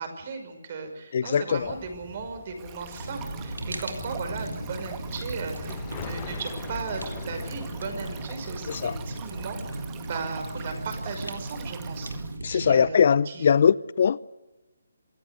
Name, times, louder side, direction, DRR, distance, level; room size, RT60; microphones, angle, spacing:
voice 1, 0.0-12.1 12.5-13.5, right 4 dB, 40° right, 6 dB, 5.8 m, -36 dB
voice 2, 1.1-1.7 8.7-8.9 12.4-14.2, left 7 dB, 45° left, 21 dB, 0.7 m, -21 dB
sound 1, 1.5-9.9, left 12 dB, 25° left, 1.1 m, -44 dB
Stream, 2.6-12.4, right 10 dB, 20° right, 2.1 m, -46 dB
Fire, 3.0-12.9, right 2 dB, 85° right, 3.8 m, -36 dB
26.5 x 15.0 x 8.3 m, 1.1 s
figure-of-eight pair, 145°, 0 cm